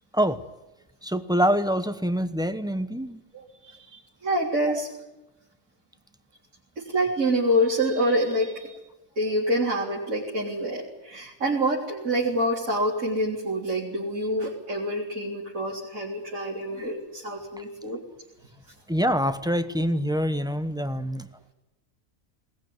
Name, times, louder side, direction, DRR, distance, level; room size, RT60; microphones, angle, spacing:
voice 1, 1.0-3.2 18.9-21.3, equal, 5° right, 10 dB, 0.9 m, -25 dB
voice 2, 3.3-4.9 6.8-8.8 9.2-18.0, equal, 90° right, -5 dB, 4.2 m, -27 dB
21.0 x 19.5 x 9.5 m, 1.0 s
omnidirectional pair, 1.4 m